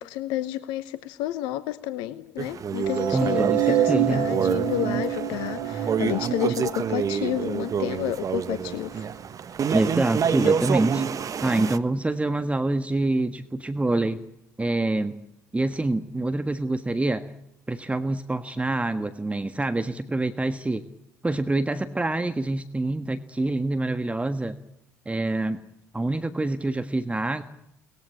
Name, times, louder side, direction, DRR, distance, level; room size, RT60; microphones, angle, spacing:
voice 1, 0.0-9.1 10.4-10.5, left 13 dB, 70° left, 14 dB, 1.0 m, -30 dB
sound 1, 2.4-11.8, right 7 dB, 45° right, 1.4 m, -28 dB
sound 2, 2.8-9.1, right 11 dB, 70° right, 2.0 m, -28 dB
voice 2, 3.1-4.3 9.7-11.0 11.4-14.2 14.6-15.1 15.5-17.3 17.7-20.8 21.2-24.5 25.0-25.6 25.9-27.4, right 2 dB, 15° right, 10 dB, 1.6 m, -26 dB
23.5 x 20.0 x 8.6 m, 0.81 s
hypercardioid pair, 55°, 8 cm